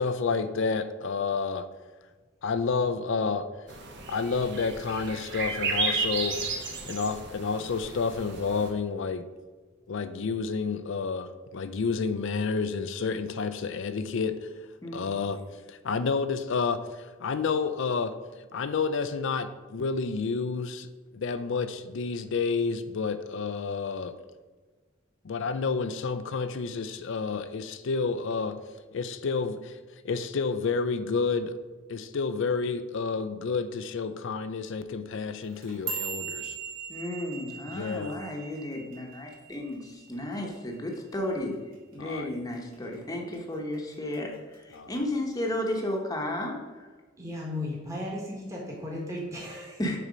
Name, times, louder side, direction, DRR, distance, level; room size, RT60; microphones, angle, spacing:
voice 1, 0.0-1.7 2.4-3.5 4.1-6.4 6.9-9.3 9.9-14.5 14.9-15.4 15.7-18.1 18.5-24.1 25.2-28.6 28.9-29.8 30.0-31.6 31.9-36.6 37.7-38.1 42.0-42.3 44.7-44.9, left 5 dB, 65° left, 12 dB, 0.4 m, -30 dB
sound 1, 3.7-8.7, right 3 dB, 60° right, 1.1 m, -33 dB
sound 2, 35.4-39.8 40.1-40.5 40.9-41.3 41.7-41.9 42.5-42.9 43.3-44.1 44.5-44.9 45.7-45.8, right 6 dB, 75° right, 2.1 m, -39 dB
voice 2, 36.9-41.6 41.9-44.3 44.6-46.6 49.8-50.0, left 1 dB, 20° left, 0 dB, 0.9 m, -33 dB
voice 3, 47.2-49.8, left 1 dB, 15° right, -4 dB, 1.3 m, -35 dB
6.6 x 4.3 x 5.1 m, 1.3 s
head